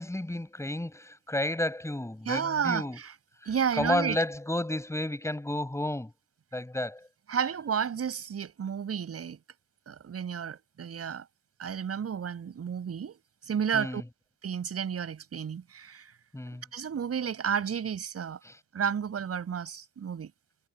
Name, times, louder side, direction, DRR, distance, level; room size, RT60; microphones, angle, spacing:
voice 1, 0.0-3.0 3.8-6.1 6.5-7.1 13.7-14.0 16.3-16.6 18.5-18.6, left 1 dB, 10° left, 7.8 m, -31 dB
voice 2, 2.3-3.1 3.5-4.2 7.3-9.4 9.9-11.2 11.6-14.0 14.4-16.1 16.7-18.4 18.7-20.3, right 7 dB, 50° right, 7.3 m, -32 dB
cardioid pair, 90°, 30 cm